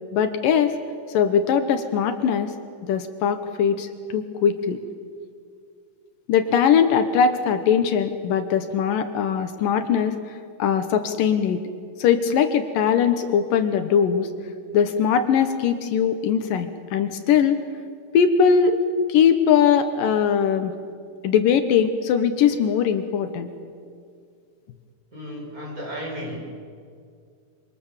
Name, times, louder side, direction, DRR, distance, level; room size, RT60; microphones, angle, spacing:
voice 1, 0.1-0.8 1.1-2.5 2.8-4.8 6.3-11.6 12.0-14.3 14.7-17.6 18.1-18.8 19.1-20.7 21.2-23.5, left 7 dB, 75° left, 8 dB, 2.8 m, -21 dB
voice 2, 25.1-26.5, equal, 25° right, -1 dB, 5.8 m, -34 dB
26.0 x 25.5 x 7.4 m, 2.2 s
omnidirectional pair, 4.0 m